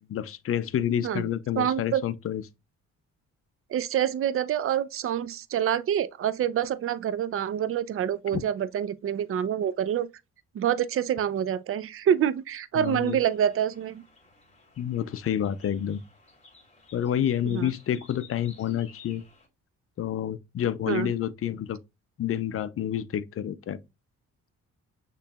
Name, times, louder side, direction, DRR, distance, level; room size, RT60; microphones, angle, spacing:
voice 1, 0.1-2.4 8.3-8.4 12.7-13.2 14.8-16.0 16.9-19.2 20.0-21.8 22.2-23.8, left 10 dB, 50° left, 0.5 m, -29 dB
voice 2, 1.6-2.0 3.7-10.1 10.5-14.0 17.4-17.7 20.9-21.1, right 9 dB, 45° right, 0.5 m, -27 dB
sound 1, 12.8-19.5, left 4 dB, 20° left, 2.5 m, -55 dB
6.7 x 3.0 x 2.3 m
cardioid pair, 90°, 30 cm